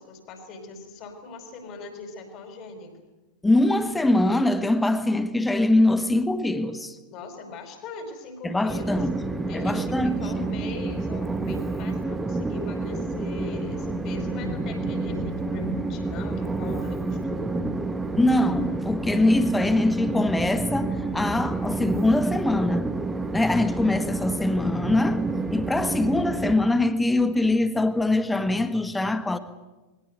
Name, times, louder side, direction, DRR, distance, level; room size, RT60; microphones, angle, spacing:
voice 1, 0.0-3.0 7.1-9.0 9.5-17.7, left 3 dB, 40° left, 5.1 m, -41 dB
voice 2, 3.4-7.0 8.4-10.5 18.2-22.9 23.3-29.4, left 2 dB, 10° left, 1.6 m, -23 dB
Train, 8.7-26.5, right 3 dB, 10° right, 1.6 m, -29 dB
sound 1, 13.6-21.5, left 7 dB, 55° left, 1.6 m, -43 dB
22.0 x 18.5 x 9.5 m
figure-of-eight pair, 90°, 0 cm